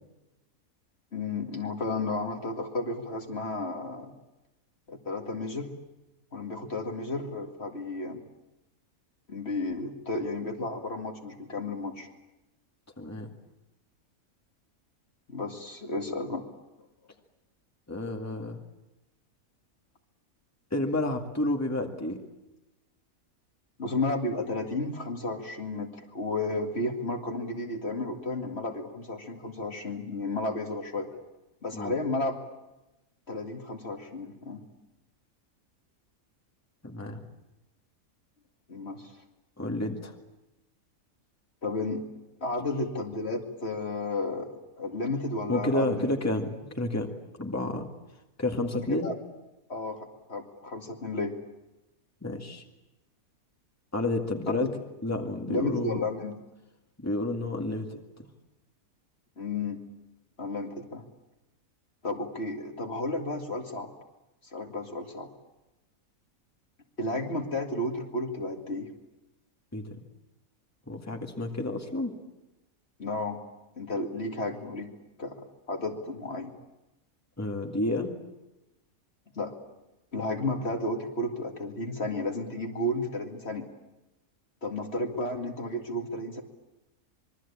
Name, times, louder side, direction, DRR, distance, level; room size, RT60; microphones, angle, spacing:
voice 1, 1.1-4.1 4.9-5.7 6.3-8.2 9.3-12.1 13.2-13.3 15.3-16.4 23.8-31.1 31.6-32.4 33.3-34.6 38.7-39.1 41.6-42.0 42.4-44.5 44.8-46.1 48.7-49.2 49.7-51.3 54.5-54.7 55.5-56.3 59.4-59.8 60.4-61.0 62.0-63.9 64.4-65.3 67.0-68.9 73.0-73.4 73.8-74.9 75.2-76.5 79.4-79.6 80.1-83.7 84.6-86.4, left 2 dB, 45° left, 3 dB, 2.4 m, -32 dB
voice 2, 13.0-13.3 17.9-18.6 20.7-22.2 31.7-32.0 36.8-37.3 39.6-40.1 45.5-47.1 47.4-47.9 48.4-49.1 52.2-52.6 53.9-54.7 55.0-56.0 57.0-58.3 69.7-69.9 70.9-72.2 77.4-78.1, left 1 dB, 10° left, 3 dB, 2.1 m, -30 dB
26.5 x 22.5 x 8.6 m, 0.99 s
omnidirectional pair, 1.5 m